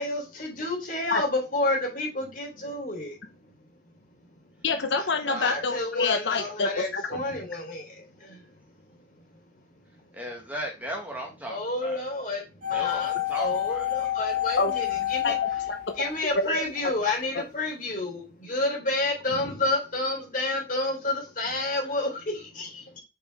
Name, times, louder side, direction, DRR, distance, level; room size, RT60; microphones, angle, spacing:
voice 1, 0.0-3.2 5.4-8.4 11.5-12.4 12.7-15.3 16.0-23.0, left 2 dB, 50° left, 1 dB, 3.6 m, -30 dB
voice 2, 4.6-7.0 14.6-14.7 15.2-15.8 16.3-16.9 17.3-17.4, left 4 dB, 85° left, 6 dB, 0.9 m, -27 dB
voice 3, 5.3-5.6 10.1-12.0 12.7-13.9, equal, 10° right, 0 dB, 1.9 m, -36 dB
sound 1, 12.6-16.7 17.0-17.1, left 14 dB, 50° right, 1.6 m, -29 dB
7.1 x 5.1 x 3.4 m, 0.29 s
head